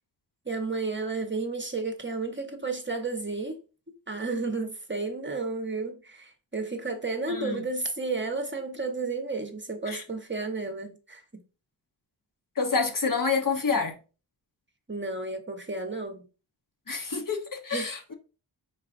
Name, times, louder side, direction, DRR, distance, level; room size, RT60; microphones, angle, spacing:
voice 1, 0.5-3.6 4.1-11.4 14.9-16.3 17.7-17.9, right 3 dB, 25° right, 0.9 m, -32 dB
voice 2, 7.3-7.6 9.9-10.0 12.6-14.0 16.9-18.1, left 4 dB, 45° left, 1.0 m, -28 dB
4.8 x 4.1 x 2.5 m
cardioid pair, 50°, 46 cm